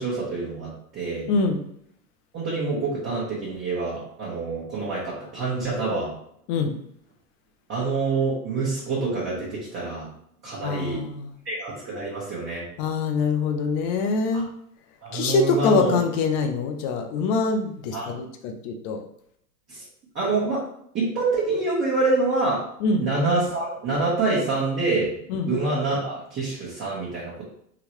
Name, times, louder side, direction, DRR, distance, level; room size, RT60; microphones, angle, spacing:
voice 1, 0.0-1.3 2.3-6.1 7.7-10.1 10.4-11.1 11.4-12.7 14.3-14.4 15.0-16.0 17.9-18.1 19.7-19.8 20.1-20.6 20.9-22.6 23.0-25.1 25.5-27.4, right 3 dB, 25° right, -7 dB, 1.2 m, -26 dB
voice 2, 1.3-1.6 6.5-6.7 10.6-11.3 12.8-14.5 15.1-19.0 22.8-23.0 25.3-25.5, left 4 dB, 35° left, 4 dB, 0.5 m, -24 dB
3.8 x 2.3 x 3.0 m, 0.68 s
hypercardioid pair, 100°, 49 cm